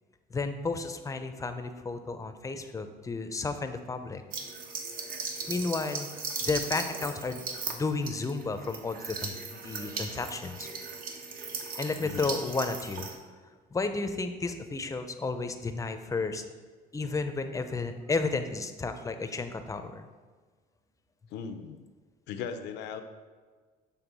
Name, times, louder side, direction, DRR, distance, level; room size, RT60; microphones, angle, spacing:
voice 1, 0.3-4.2 5.5-6.1 6.4-7.5 7.7-10.7 11.8-13.1 13.7-16.4 16.9-20.1, left 3 dB, 20° left, 8 dB, 0.6 m, -32 dB
sound 1, 4.3-13.1, right 4 dB, 60° right, 1.0 m, -38 dB
voice 2, 12.0-12.3 21.3-21.8 22.3-23.0, left 7 dB, 90° left, 8 dB, 0.7 m, -38 dB
7.1 x 3.5 x 6.1 m, 1.5 s
cardioid pair, 110°, 17 cm